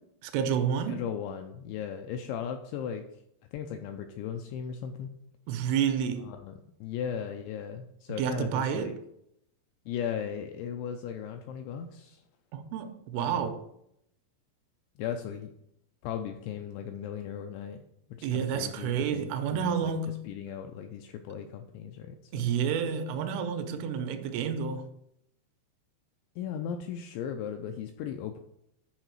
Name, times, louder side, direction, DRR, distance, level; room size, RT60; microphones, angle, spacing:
voice 1, 0.2-1.0 5.5-6.3 8.2-9.0 12.5-13.6 18.2-20.2 22.3-24.9, right 7 dB, 85° right, 3.2 m, -30 dB
voice 2, 0.9-3.2 3.5-5.1 6.2-8.9 9.9-12.2 13.1-13.5 15.0-15.5 16.0-17.8 18.1-19.9 20.2-22.5 26.4-28.4, left 8 dB, 85° left, 2.6 m, -37 dB
10.5 x 4.7 x 4.6 m
omnidirectional pair, 5.7 m